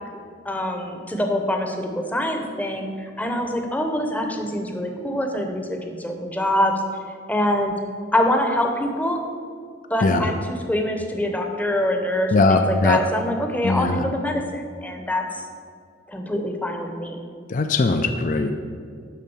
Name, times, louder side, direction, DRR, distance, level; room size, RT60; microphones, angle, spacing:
voice 1, 0.4-6.7 7.3-7.7 8.1-9.2 9.9-15.2 16.1-17.2, left 1 dB, 10° left, 3 dB, 0.8 m, -24 dB
voice 2, 12.3-13.0 13.6-14.0 17.5-18.6, left 3 dB, 40° left, 7 dB, 0.4 m, -20 dB
11.0 x 3.7 x 7.0 m, 2.1 s
head